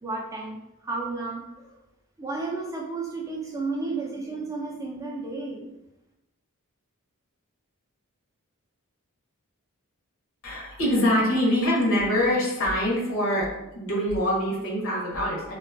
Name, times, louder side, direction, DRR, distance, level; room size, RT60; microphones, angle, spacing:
voice 1, 0.0-1.7 2.2-5.7, right 3 dB, 15° right, -1 dB, 0.3 m, -32 dB
voice 2, 10.4-15.5, left 1 dB, 60° left, -4 dB, 0.8 m, -24 dB
2.5 x 2.2 x 2.5 m, 0.90 s
head